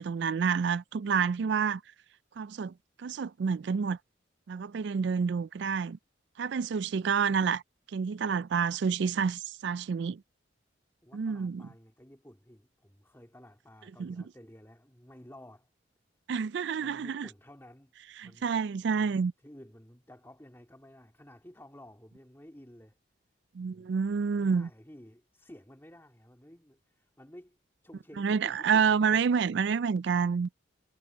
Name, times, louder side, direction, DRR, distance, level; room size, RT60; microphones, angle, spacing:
voice 1, 0.0-1.8 2.4-4.0 4.5-6.0 6.4-7.6 7.9-10.2 11.1-11.7 14.0-14.2 16.3-17.3 18.2-19.3 23.5-24.7 28.2-30.5, right 6 dB, 60° right, 0.3 m, -28 dB
voice 2, 11.0-15.7 16.8-17.9 18.2-18.5 18.9-23.0 23.6-23.9 24.3-29.0, left 1 dB, 10° left, 2.9 m, -53 dB
head